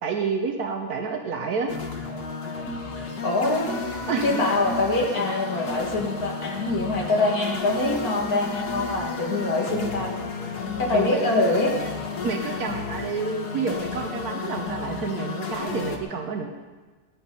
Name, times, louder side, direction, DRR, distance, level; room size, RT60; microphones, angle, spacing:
voice 1, 0.0-1.7 4.1-4.4 10.9-11.4 12.2-16.5, right 5 dB, 75° right, 3 dB, 1.5 m, -29 dB
sound 1, 1.7-16.0, left 4 dB, 90° left, 2.1 m, -32 dB
voice 2, 3.2-3.7 4.2-10.2 10.8-11.7, left 2 dB, 70° left, 0 dB, 2.7 m, -24 dB
19.5 x 10.5 x 5.5 m, 1.3 s
omnidirectional pair, 1.6 m